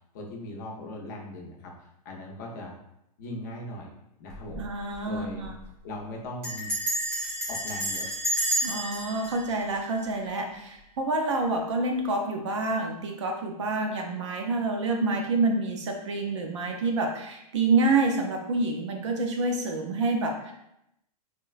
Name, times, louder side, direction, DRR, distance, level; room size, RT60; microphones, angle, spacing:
voice 1, 0.1-2.7 3.2-3.9 4.2-4.6 5.1-5.5 5.8-6.7 7.5-8.1, left 1 dB, 30° left, -1 dB, 0.4 m, -39 dB
Bell, 4.3-4.7 4.9-5.0 5.3-5.6 6.4-10.5, right 1 dB, 25° right, 0.9 m, -31 dB
voice 2, 4.6-5.5 8.6-20.5, right 3 dB, 50° right, 2 dB, 0.4 m, -27 dB
3.8 x 2.1 x 2.3 m, 0.81 s
supercardioid pair, 180°, 20 cm